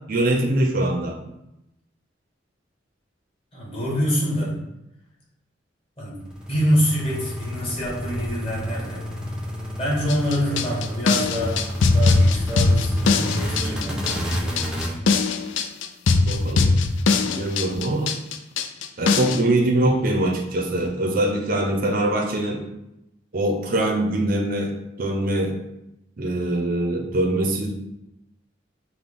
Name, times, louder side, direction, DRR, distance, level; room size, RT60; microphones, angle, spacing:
voice 1, 0.1-1.2 16.2-16.8 17.3-18.1 19.0-22.6 23.3-25.5 26.2-27.7, right 1 dB, 50° right, 1 dB, 0.6 m, -23 dB
voice 2, 3.5-4.6 6.0-6.2 6.5-9.0 9.8-11.6 11.9-14.4, equal, 30° left, -4 dB, 1.4 m, -25 dB
sound 1, 6.2-14.9, equal, 5° right, 0.6 m, -30 dB
sound 2, 10.1-19.4, left 4 dB, 70° left, 0.4 m, -21 dB
5.8 x 2.2 x 3.5 m, 0.87 s
head